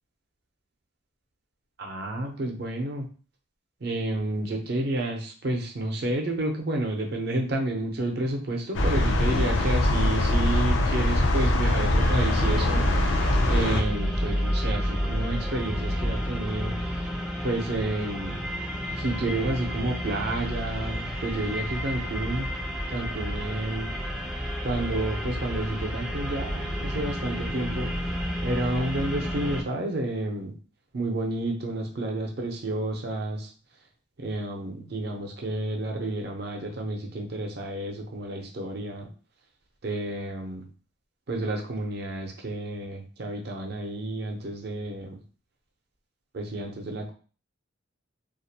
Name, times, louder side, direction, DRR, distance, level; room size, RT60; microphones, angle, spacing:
voice 1, 1.8-3.1 3.8-13.1 13.5-16.8 17.4-18.4 19.0-22.5 22.9-23.9 24.6-27.9 28.4-30.5 30.9-33.5 34.2-39.1 39.8-40.7 41.3-45.2 46.3-47.1, right 1 dB, 55° right, 2 dB, 0.6 m, -30 dB
sound 1, 8.7-13.8, left 1 dB, 70° left, 0.4 m, -23 dB
sound 2, 11.9-29.6, equal, 5° right, 0.4 m, -31 dB
2.3 x 2.1 x 2.7 m, 0.38 s
head